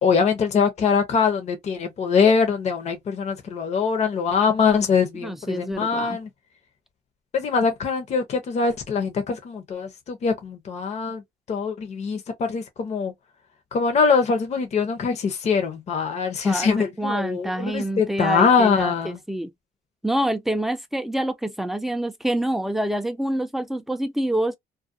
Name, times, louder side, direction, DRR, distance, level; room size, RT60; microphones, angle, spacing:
voice 1, 0.0-6.3 7.3-11.2 11.5-13.1 13.7-19.2, left 5 dB, 40° left, 0.7 m, -23 dB
voice 2, 5.2-6.2 16.4-19.5 20.0-24.6, right 1 dB, ahead, 0.4 m, -27 dB
2.4 x 2.2 x 2.5 m
cardioid pair, 110°, 17 cm